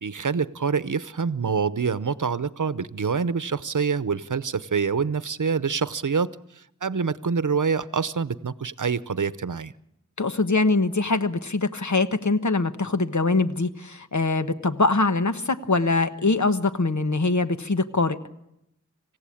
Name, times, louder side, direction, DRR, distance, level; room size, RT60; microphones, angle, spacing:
voice 1, 0.0-9.7, right 5 dB, 80° right, 15 dB, 0.8 m, -26 dB
voice 2, 10.2-18.2, left 3 dB, 70° left, 9 dB, 1.2 m, -23 dB
26.5 x 16.0 x 8.5 m, 0.83 s
wide cardioid pair, 50°, 30 cm